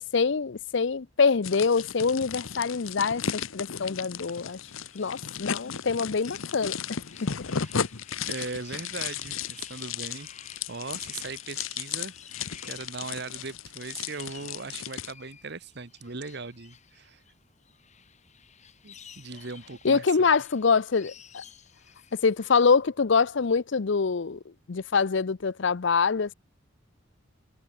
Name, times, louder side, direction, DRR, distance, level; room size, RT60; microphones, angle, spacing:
voice 1, 0.0-4.6 4.9-6.7 19.8-21.4 22.1-24.4 24.7-26.3, left 5 dB, 60° left, 0.6 m, -25 dB
sound 1, 1.4-15.1, left 7 dB, 75° left, 1.0 m, -35 dB
sound 2, 4.2-22.6, left 7 dB, 35° left, 3.5 m, -53 dB
voice 2, 8.3-10.3 10.7-12.1 12.6-17.2 18.8-20.0, right 4 dB, 55° right, 1.2 m, -39 dB
head